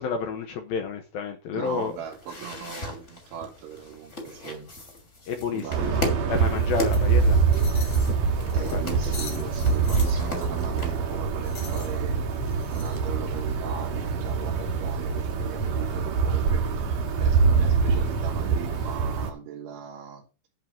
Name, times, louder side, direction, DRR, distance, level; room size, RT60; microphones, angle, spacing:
voice 1, 0.0-1.9 5.3-6.0 6.3-7.8 8.1-8.2 8.5-8.8, left 5 dB, 70° left, 2.4 m, -30 dB
voice 2, 1.5-4.7 5.5-6.1 8.5-12.2 12.7-20.3, right 8 dB, 85° right, 4.7 m, -38 dB
sound 1, 1.7-10.9, left 2 dB, 25° left, 1.7 m, -38 dB
sound 2, 5.7-19.3, right 5 dB, 60° right, 2.5 m, -24 dB
sound 3, 6.9-15.6, left 4 dB, 50° left, 1.9 m, -46 dB
10.5 x 4.0 x 7.0 m
omnidirectional pair, 5.3 m